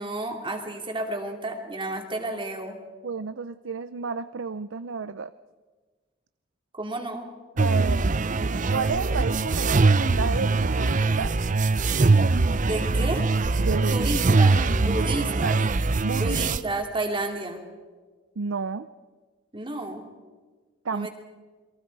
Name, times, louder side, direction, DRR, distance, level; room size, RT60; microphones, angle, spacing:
voice 1, 0.0-2.8 6.8-7.3 12.6-13.2 13.9-15.6 16.2-17.6 19.5-20.1 20.9-21.1, right 2 dB, 25° right, 3 dB, 2.8 m, -31 dB
voice 2, 3.0-5.3 7.6-8.1 8.7-11.4 13.6-14.1 14.9-15.5 16.0-16.5 18.4-18.9 20.8-21.1, right 5 dB, 90° right, 13 dB, 0.6 m, -31 dB
sound 1, 7.6-16.6, right 3 dB, 40° right, 0.6 m, -22 dB
29.0 x 22.5 x 4.8 m, 1.4 s
head